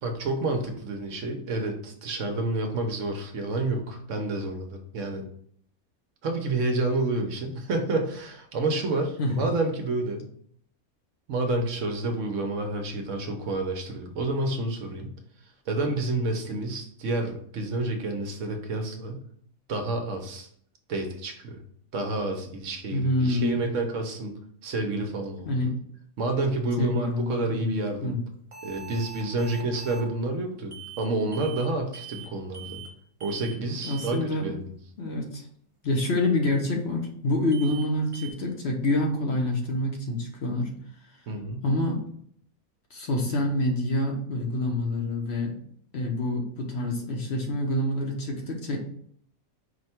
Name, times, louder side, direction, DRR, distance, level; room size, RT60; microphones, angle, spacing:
voice 1, 0.0-5.2 6.2-10.3 11.3-15.1 15.7-19.2 19.7-20.5 20.9-21.6 21.9-25.5 26.2-28.2 28.6-32.8 33.2-34.7 41.3-41.6, right 2 dB, 70° right, 4 dB, 1.0 m, -29 dB
voice 2, 22.9-23.7 25.4-25.7 26.8-27.7 28.0-28.2 33.8-34.5 35.0-35.5 35.8-40.7 41.6-42.0 42.9-45.6 45.9-48.8, left 1 dB, 55° left, 1 dB, 0.9 m, -27 dB
sound 1, 28.5-30.1 30.7-31.1 31.3-31.7 31.9-32.3 32.5-32.9 33.2-33.6 33.8-34.2 37.5-37.9 38.1-38.3, right 8 dB, 40° right, 0.4 m, -42 dB
4.8 x 2.2 x 4.3 m, 0.63 s
omnidirectional pair, 1.5 m